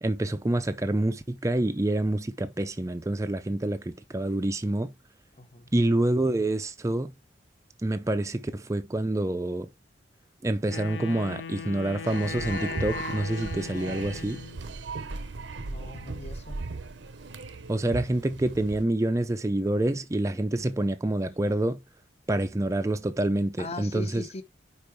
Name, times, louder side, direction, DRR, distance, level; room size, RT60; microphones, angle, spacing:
voice 1, 0.0-4.9 5.7-7.1 7.8-9.7 10.4-14.4 17.7-21.8 22.3-24.2, right 1 dB, 15° right, 0.5 m, -27 dB
voice 2, 5.3-5.7 15.6-16.6 23.6-24.4, left 2 dB, 35° left, 0.8 m, -39 dB
Wind instrument woodwind instrument, 10.7-14.7, left 5 dB, 70° left, 0.6 m, -38 dB
sound 1, 12.0-18.8, right 3 dB, 75° right, 0.7 m, -37 dB
5.2 x 4.8 x 4.5 m
head